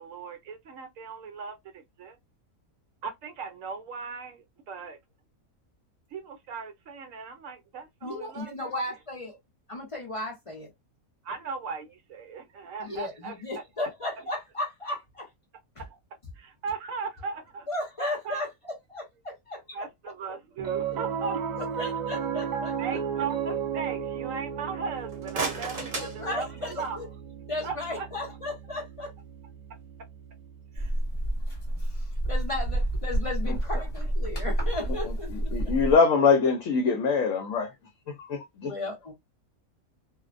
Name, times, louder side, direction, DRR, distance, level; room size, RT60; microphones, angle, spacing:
voice 1, 0.0-2.2 3.0-5.0 6.1-8.7 11.2-13.3 15.9-16.0 16.4-17.7 18.2-18.4 19.7-21.4 22.8-27.0 27.6-28.1 30.7-30.9, right 5 dB, 70° right, 0.9 m, -37 dB
voice 2, 8.0-9.4 9.7-10.7 12.8-15.3 15.8-15.9 17.7-19.6 20.0-20.1 21.6-23.2 25.8-27.1 27.5-29.1 31.8-35.8 38.6-39.1, left 2 dB, 45° left, 0.4 m, -35 dB
Piano, 20.6-31.1, right 8 dB, 85° right, 0.3 m, -35 dB
sound 1, 25.0-27.0, right 3 dB, 40° right, 0.7 m, -35 dB
sound 2, 30.8-36.0, right 1 dB, 25° left, 1.0 m, -29 dB
voice 3, 35.3-37.7 38.2-38.7, left 5 dB, 70° left, 0.9 m, -23 dB
2.5 x 2.0 x 2.4 m
omnidirectional pair, 1.5 m